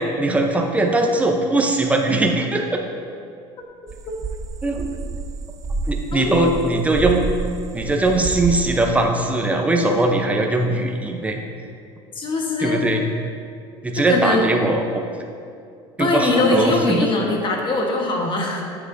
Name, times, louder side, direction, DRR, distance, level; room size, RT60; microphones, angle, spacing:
voice 1, 0.0-2.8 4.6-4.9 5.9-7.3 7.7-11.4 12.6-13.0 13.8-15.0 16.0-17.1, right 2 dB, 10° right, 2 dB, 0.8 m, -20 dB
sound 1, 3.9-7.5 7.7-8.9, right 4 dB, 25° right, 0.5 m, -29 dB
voice 2, 12.1-12.8 13.9-14.5 16.0-18.6, left 2 dB, 40° left, 0 dB, 1.4 m, -21 dB
9.1 x 7.5 x 2.8 m, 2.4 s
supercardioid pair, 110°, 13 cm